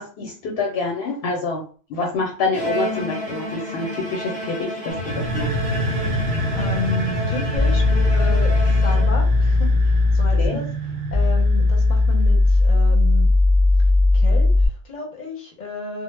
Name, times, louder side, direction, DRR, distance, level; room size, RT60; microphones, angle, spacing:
voice 1, 0.0-1.6 1.9-5.5 10.4-10.6, left 3 dB, 90° left, 1 dB, 0.9 m, -27 dB
Bowed string instrument, 2.5-9.5, equal, 10° left, 0.6 m, -30 dB
sound 1, 4.9-12.6, equal, 70° right, 0.8 m, -27 dB
voice 2, 6.5-10.6 11.1-13.3 14.1-16.0, left 2 dB, 50° left, 1 dB, 0.7 m, -32 dB
sound 2, 7.6-14.7, left 2 dB, 30° right, 0.7 m, -17 dB
2.0 x 2.0 x 3.2 m, 0.40 s
omnidirectional pair, 1.1 m